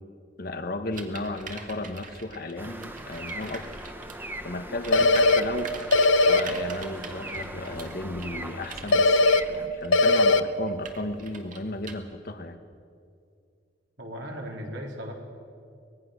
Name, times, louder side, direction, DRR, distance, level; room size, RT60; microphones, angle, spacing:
voice 1, 0.4-3.9 4.4-12.6, left 2 dB, 55° left, 8 dB, 1.3 m, -34 dB
sound 1, 0.9-4.3 4.7-11.9, right 4 dB, 45° right, 1.9 m, -43 dB
sound 2, 2.6-9.7, right 1 dB, 10° right, 1.2 m, -39 dB
sound 3, 4.9-5.4 5.9-6.4 8.9-9.4 9.9-10.4, left 3 dB, 80° left, 0.7 m, -18 dB
voice 2, 14.0-15.1, equal, 70° right, 0 dB, 3.8 m, -37 dB
24.5 x 19.0 x 6.5 m, 2.4 s
head